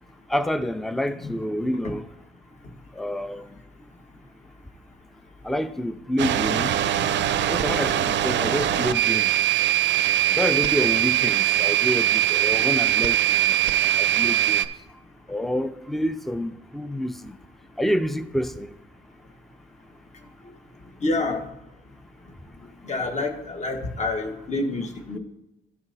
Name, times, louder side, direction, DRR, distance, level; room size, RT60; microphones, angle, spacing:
voice 1, 0.3-2.0 3.0-3.5 5.4-6.7 7.5-9.3 10.3-13.2 13.5-13.6 14.0-14.6 15.3-17.4 17.8-18.7, equal, ahead, 0.4 m, -27 dB
sound 1, 6.2-14.7, right 12 dB, 65° right, 0.5 m, -22 dB
voice 2, 21.0-21.4 22.8-25.2, left 2 dB, 35° left, 1.3 m, -27 dB
13.0 x 5.7 x 2.7 m
cardioid pair, 90°, 20 cm